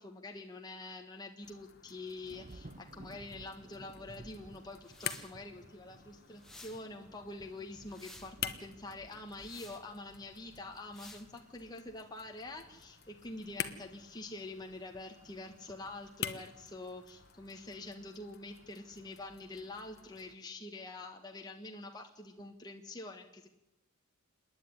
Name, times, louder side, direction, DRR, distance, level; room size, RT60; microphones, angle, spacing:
voice 1, 0.0-23.5, left 2 dB, 20° left, 2 dB, 1.5 m, -46 dB
sound 1, 1.4-20.4, left 8 dB, 45° left, 1.2 m, -48 dB
Thunder / Rain, 2.2-17.8, right 2 dB, 35° right, 0.9 m, -58 dB
sound 2, 4.8-5.3 6.4-6.8 7.6-8.3 9.4-9.8 10.9-11.3, left 1 dB, ahead, 1.5 m, -53 dB
26.5 x 10.5 x 10.0 m, 0.90 s
head